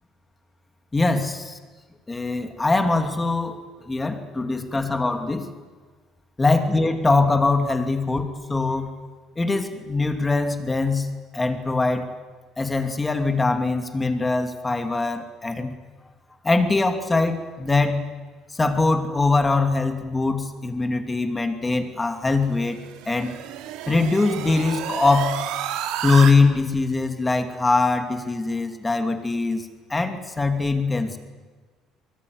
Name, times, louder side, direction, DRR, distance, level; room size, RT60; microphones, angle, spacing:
voice 1, 0.9-1.6 2.1-3.6 3.9-5.5 6.4-8.9 9.4-12.1 12.6-15.8 16.4-18.0 18.6-22.8 23.1-23.3 23.9-25.4 26.0-31.2, left 3 dB, 15° left, 6 dB, 2.6 m, -22 dB
sound 1, 22.4-26.3, right 11 dB, 90° right, 2.8 m, -31 dB
24.0 x 23.5 x 9.6 m, 1.4 s
cardioid pair, 140°, 0 cm